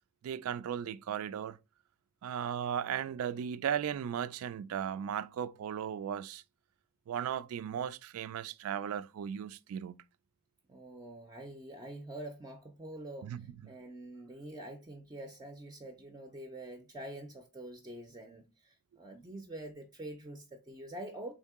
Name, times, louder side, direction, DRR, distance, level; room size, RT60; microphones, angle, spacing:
voice 1, 0.2-1.6 2.2-6.4 7.1-10.0 13.2-13.7, right 8 dB, 90° right, 0.3 m, -36 dB
voice 2, 10.7-21.3, right 1 dB, 20° right, 0.4 m, -46 dB
3.7 x 2.7 x 3.5 m
head